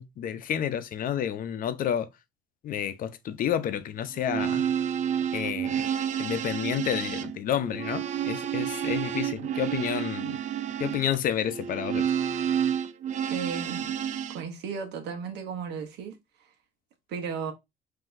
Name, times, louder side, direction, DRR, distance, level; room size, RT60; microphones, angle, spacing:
voice 1, 0.0-2.1 2.6-4.7 5.3-5.8 6.2-10.4 10.8-12.1, left 9 dB, 55° left, 0.7 m, -30 dB
sound 1, 4.2-14.4, right 9 dB, 45° right, 0.5 m, -30 dB
voice 2, 13.3-13.9 14.3-16.2 17.1-17.5, right 6 dB, 85° right, 1.0 m, -34 dB
5.7 x 2.8 x 2.6 m
cardioid pair, 110°, 17 cm